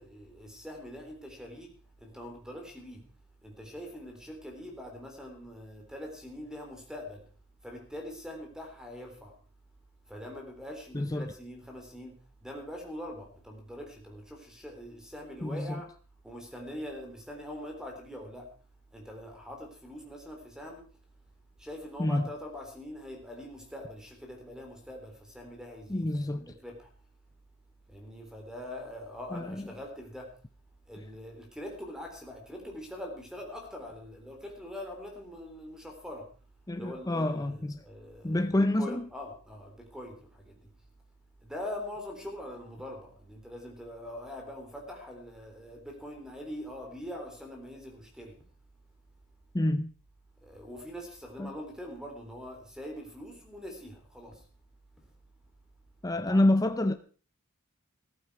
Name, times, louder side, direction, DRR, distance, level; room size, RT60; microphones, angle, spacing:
voice 1, 0.0-1.7 2.0-3.1 3.4-7.2 7.6-9.3 10.1-15.9 16.2-18.5 18.9-20.8 21.6-26.9 27.9-30.3 30.9-36.3 36.8-40.7 41.4-48.4 50.4-54.5 55.0-55.1 56.1-56.5, left 1 dB, 5° right, 3.7 m, -43 dB
voice 2, 10.9-11.3 15.4-15.8 22.0-22.3 25.9-26.5 29.3-29.7 36.7-37.8 38.2-39.1 49.5-49.9 51.4-51.5 56.0-56.9, left 1 dB, 15° left, 0.6 m, -28 dB
14.5 x 14.5 x 4.8 m
head